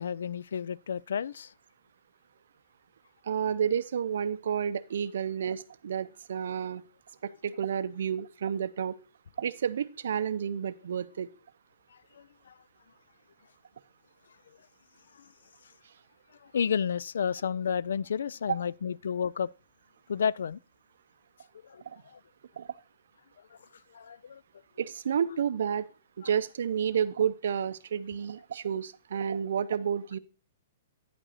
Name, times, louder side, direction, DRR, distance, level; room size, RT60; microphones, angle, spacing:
voice 1, 0.0-1.5 12.1-12.5 15.2-15.3 16.5-19.5 20.1-20.6 21.6-21.8 22.1-22.2 23.9-24.4, left 7 dB, 80° left, 0.3 m, -31 dB
voice 2, 3.2-6.8 7.2-9.0 9.4-11.3 18.5-18.6 21.9-22.0 22.6-22.7 24.8-25.9 26.2-30.2, right 8 dB, 65° right, 0.6 m, -30 dB
9.8 x 5.5 x 4.1 m
hypercardioid pair, 175°, 0 cm